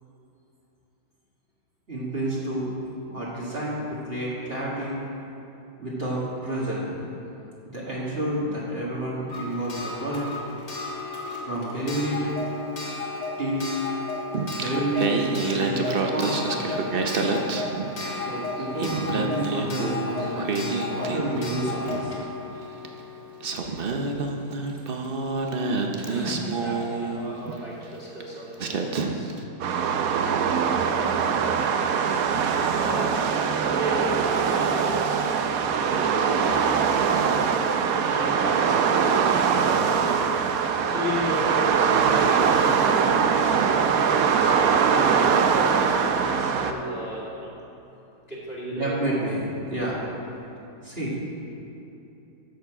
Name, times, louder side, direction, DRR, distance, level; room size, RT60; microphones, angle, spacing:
voice 1, 1.9-2.8 3.1-5.0 5.8-6.9 7.3-7.4 7.7-10.3 11.4-12.5 13.4-13.6 14.6-16.6 18.1-22.2 48.7-50.0 50.8-51.2, right 1 dB, 35° right, -7 dB, 2.0 m, -29 dB
Clock, 9.3-23.9 25.0-25.1 25.4-25.5, left 3 dB, 75° left, 2.0 m, -34 dB
Singing, 14.3-18.3 18.6-21.8 22.8-22.9 23.4-27.6 28.2-28.3 28.6-29.4, right 3 dB, 50° right, 0.7 m, -28 dB
voice 2, 25.4-25.8 26.1-29.3 30.2-30.7 32.2-35.2 35.6-36.8 38.1-38.8 39.4-40.0 40.4-47.5 48.3-48.9 49.2-49.3, equal, 35° left, -6 dB, 2.2 m, -35 dB
sound 1, 29.6-46.7, right 6 dB, 70° right, 1.0 m, -22 dB
12.5 x 7.1 x 4.9 m, 2.9 s
omnidirectional pair, 1.8 m